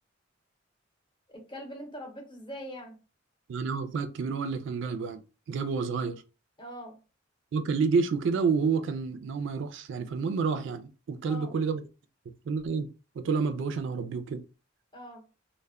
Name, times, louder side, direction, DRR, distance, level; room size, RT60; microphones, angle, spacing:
voice 1, 1.3-3.0 6.6-7.0 11.2-11.5 14.9-15.2, equal, 25° left, 0.7 m, -42 dB
voice 2, 3.5-5.2 5.5-6.2 7.5-11.8 12.5-12.9 13.2-14.4, right 5 dB, 65° right, 0.3 m, -29 dB
2.1 x 2.1 x 3.4 m
head